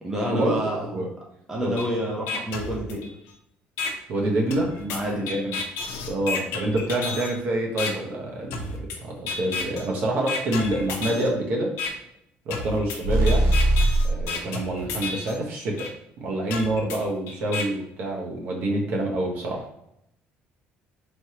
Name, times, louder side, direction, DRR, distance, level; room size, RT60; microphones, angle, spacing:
voice 1, 0.0-0.9 1.5-3.1 4.8-5.4, equal, 10° right, -3 dB, 0.7 m, -28 dB
sound 1, 1.8-1.9 2.3-3.3 3.8-3.9 4.5-7.3 7.8-7.9 8.5-9.0 9.3-9.8 10.3-11.3 11.8-11.9 12.5-15.3 15.8-15.9 16.5-17.6, left 4 dB, 85° left, 0.7 m, -31 dB
voice 2, 4.1-4.7 5.3-5.6 5.8-11.7 12.5-13.5 14.1-15.9 16.2-19.6, right 1 dB, 50° right, -1 dB, 0.9 m, -27 dB
sound 2, 13.0-14.2, right 1 dB, 80° right, 0.8 m, -20 dB
4.4 x 3.2 x 2.9 m, 0.77 s
cardioid pair, 175°, 4 cm